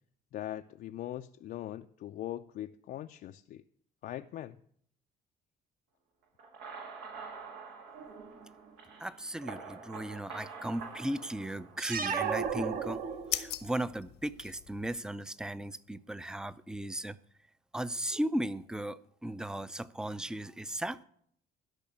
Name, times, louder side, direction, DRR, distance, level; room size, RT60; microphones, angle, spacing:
voice 1, 0.3-3.6 4.0-4.6, left 12 dB, 60° left, 7 dB, 0.4 m, -41 dB
sound 1, 6.4-12.2, right 5 dB, 85° right, 2.2 m, -47 dB
voice 2, 9.0-13.0 13.3-17.2 17.7-21.0, right 1 dB, 5° right, 16 dB, 0.4 m, -36 dB
sound 2, 11.8-13.6, right 6 dB, 55° right, 1.2 m, -33 dB
sound 3, 12.2-15.0, left 14 dB, 90° left, 1.0 m, -41 dB
12.5 x 5.8 x 8.6 m, 0.65 s
cardioid pair, 110°, 17 cm